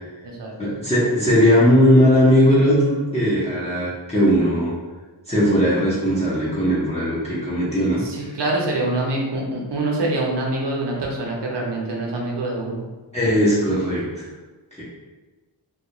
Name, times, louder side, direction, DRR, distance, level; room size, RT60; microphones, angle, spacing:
voice 1, 0.6-4.7 5.3-8.3 13.1-14.3 14.8-14.9, equal, 15° left, -10 dB, 0.8 m, -18 dB
voice 2, 8.0-12.8, right 2 dB, 65° right, -2 dB, 0.7 m, -25 dB
2.3 x 2.1 x 2.9 m, 1.3 s
cardioid pair, 40°, 45 cm